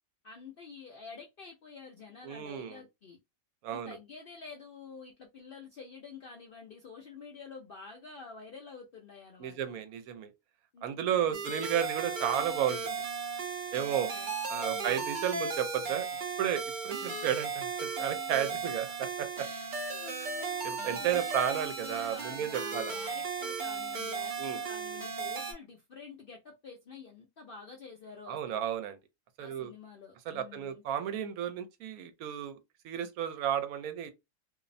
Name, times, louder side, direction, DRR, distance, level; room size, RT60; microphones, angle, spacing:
voice 1, 0.2-3.2 3.7-9.8 10.7-11.4 14.1-14.3 14.7-15.1 18.6-19.0 19.4-28.6 29.4-30.8, left 4 dB, 65° left, 0.5 m, -49 dB
voice 2, 2.2-2.8 3.6-4.0 9.4-10.3 10.8-13.0 13.7-14.1 14.5-16.1 16.4-18.9 19.2-19.5 20.6-22.9 24.4-24.6 28.3-29.0 29.4-29.7 30.3-32.6 32.8-34.1, right 10 dB, 80° right, 1.0 m, -33 dB
sound 1, 11.3-25.5, right 4 dB, 50° right, 0.6 m, -36 dB
2.6 x 2.0 x 2.5 m
omnidirectional pair, 1.5 m